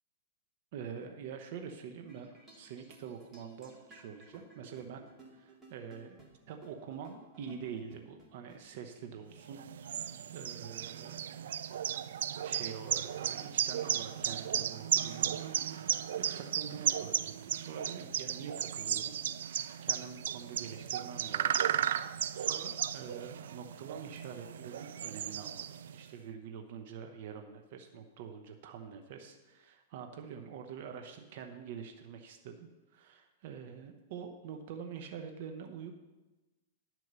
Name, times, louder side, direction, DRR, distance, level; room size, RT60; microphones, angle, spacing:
voice 1, 0.7-5.0 5.3-6.2 6.5-9.6 9.9-11.3 12.4-21.6 22.0-25.7 25.9-36.0, right 7 dB, 60° right, 5 dB, 0.9 m, -46 dB
sound 1, 2.1-11.5, right 2 dB, 20° right, 2.2 m, -58 dB
sound 2, 9.5-26.0, right 9 dB, 80° right, 0.3 m, -35 dB
11.0 x 4.6 x 6.7 m, 1.1 s
hypercardioid pair, 130°, 0 cm